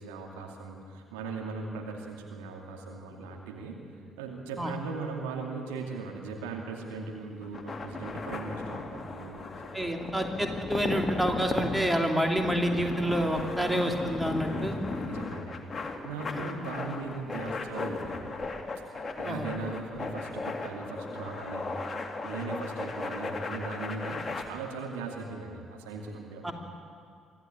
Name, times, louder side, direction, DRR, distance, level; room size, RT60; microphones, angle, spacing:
voice 1, 0.0-3.8 4.2-9.7 10.1-10.2 14.5-18.4 19.2-21.7 22.2-26.5, right 4 dB, 75° right, 1 dB, 2.4 m, -39 dB
sound 1, 7.4-24.4, left 3 dB, 30° left, 2.3 m, -36 dB
voice 2, 9.7-14.8 16.3-16.4 19.2-19.5 26.4-26.5, equal, 5° right, 3 dB, 2.8 m, -28 dB
24.0 x 14.5 x 8.6 m, 2.3 s
figure-of-eight pair, 45°, 0 cm